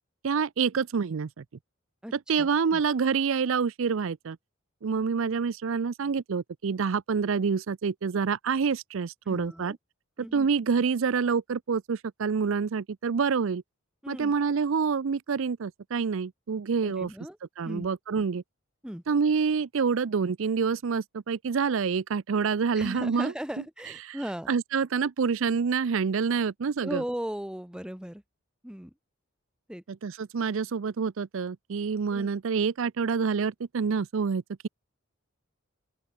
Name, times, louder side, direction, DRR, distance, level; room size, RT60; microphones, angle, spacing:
voice 1, 0.2-1.4 2.3-4.4 4.8-9.8 10.3-13.6 14.1-17.1 17.6-18.4 19.1-23.3 24.1-24.2 24.5-27.0 30.0-34.7, right 5 dB, 65° right, 0.5 m, -27 dB
voice 2, 2.0-2.8 9.3-9.8 10.2-10.5 14.0-14.3 16.8-17.4 17.6-17.9 18.1-18.2 18.8-19.0 22.7-24.5 26.8-28.2 28.6-28.9 29.7-29.8 32.1-32.3, equal, 5° right, 0.8 m, -37 dB
open air
head